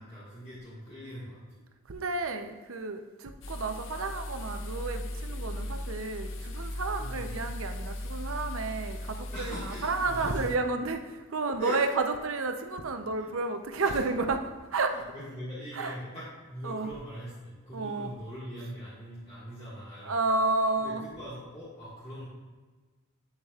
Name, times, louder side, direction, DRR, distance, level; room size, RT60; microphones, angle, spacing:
voice 1, 0.0-1.4 7.0-7.3 9.3-10.5 11.6-11.9 13.2-13.3 13.8-14.1 14.9-20.2 20.7-22.2, equal, 25° left, -11 dB, 1.7 m, -41 dB
voice 2, 1.9-14.4 14.7-15.0 15.7-16.0 16.6-16.9 17.7-18.1 20.0-21.1, right 3 dB, 80° right, 7 dB, 0.7 m, -31 dB
sound 1, 3.4-10.6, left 1 dB, 70° left, 0.6 m, -37 dB
8.8 x 7.4 x 2.4 m, 1.3 s
head